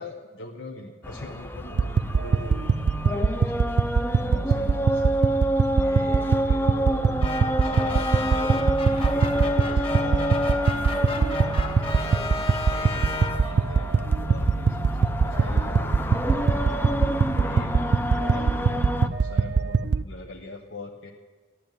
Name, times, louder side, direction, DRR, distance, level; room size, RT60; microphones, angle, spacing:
voice 1, 0.0-3.7 4.2-7.3 7.5-21.1, left 2 dB, 75° left, 0 dB, 1.1 m, -42 dB
sound 1, 1.0-19.1, equal, 10° left, 0.5 m, -28 dB
sound 2, 1.7-20.0, right 5 dB, 60° right, 0.4 m, -24 dB
sound 3, 7.2-13.7, left 3 dB, 30° left, 1.1 m, -34 dB
14.0 x 10.5 x 9.1 m, 1.4 s
head